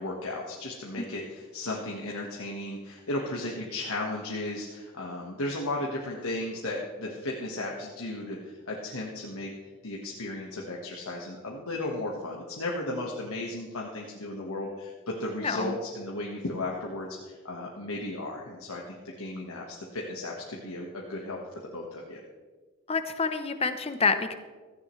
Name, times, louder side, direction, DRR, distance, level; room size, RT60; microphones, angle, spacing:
voice 1, 0.0-9.5 9.8-22.2, left 2 dB, 90° left, -2 dB, 1.5 m, -35 dB
voice 2, 15.4-15.8 22.9-24.3, left 4 dB, 25° left, 9 dB, 0.8 m, -27 dB
15.5 x 14.5 x 3.2 m, 1.4 s
head